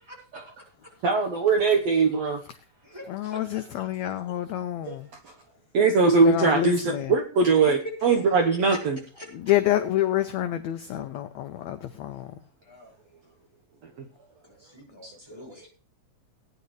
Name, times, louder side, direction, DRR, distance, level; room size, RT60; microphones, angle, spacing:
voice 1, 0.1-0.4 2.8-3.8 5.9-6.3 8.7-8.8 9.1-9.3 12.6-12.9 14.4-15.7, equal, 5° right, 4.8 m, -46 dB
voice 2, 1.0-2.4 4.9-5.0 5.2-5.3 5.7-9.0 13.8-13.9 15.0-15.4, right 4 dB, 60° right, 2.0 m, -22 dB
voice 3, 3.1-5.1 6.2-7.1 9.3-12.3, left 13 dB, 75° left, 1.6 m, -27 dB
19.5 x 9.6 x 3.2 m
omnidirectional pair, 3.8 m